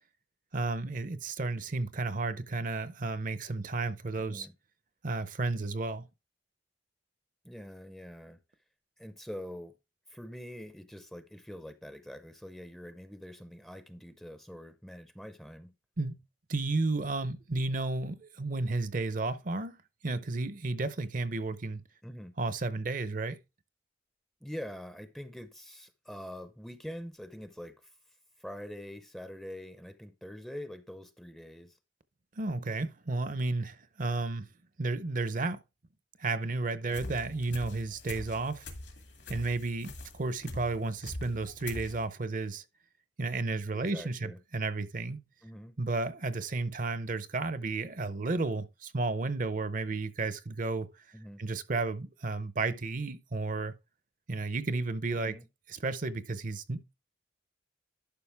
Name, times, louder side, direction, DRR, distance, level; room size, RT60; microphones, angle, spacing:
voice 1, 0.5-4.5 5.0-6.1 16.0-16.2 16.5-19.8 20.0-21.8 22.4-23.4 32.3-34.5 34.8-35.6 36.2-38.7 39.3-42.6 43.2-45.2 45.8-50.9 51.4-53.7 54.3-55.4 55.7-56.9, right 3 dB, 45° right, 0.6 m, -32 dB
voice 2, 4.2-4.5 7.4-8.4 9.0-9.7 10.1-15.7 22.0-22.3 24.4-27.9 28.4-31.8 36.9-37.1 43.7-44.4 45.4-45.8 51.1-51.4 55.1-55.5, equal, ahead, 0.6 m, -44 dB
sound 1, 36.9-42.1, left 2 dB, 65° left, 2.0 m, -44 dB
11.5 x 5.3 x 3.4 m
head